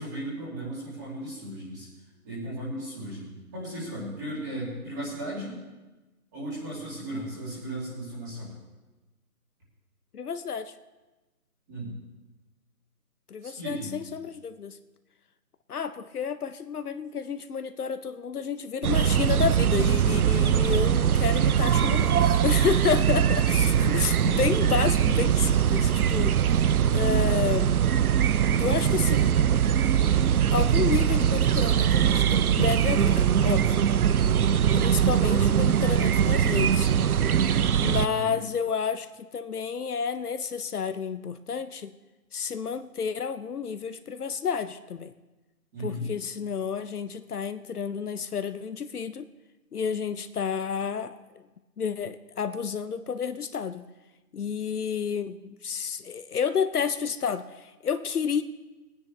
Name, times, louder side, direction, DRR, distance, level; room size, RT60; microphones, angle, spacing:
voice 1, 0.0-1.9 2.2-5.6 6.3-8.5 11.7-11.9 13.4-14.0 22.7-24.0 38.0-38.4 45.7-46.1, right 1 dB, 10° right, -8 dB, 2.6 m, -36 dB
voice 2, 10.1-10.7 13.3-14.8 15.7-26.4 26.9-27.8 28.6-29.4 30.5-33.7 34.7-36.9 37.8-41.9 42.3-45.1 45.8-49.3 49.7-51.4 51.8-53.9 54.3-58.4, left 6 dB, 75° left, 11 dB, 0.8 m, -30 dB
sound 1, 18.8-38.1, right 9 dB, 70° right, 0.5 m, -22 dB
21.5 x 9.6 x 3.2 m, 1.1 s
hypercardioid pair, 175°, 46 cm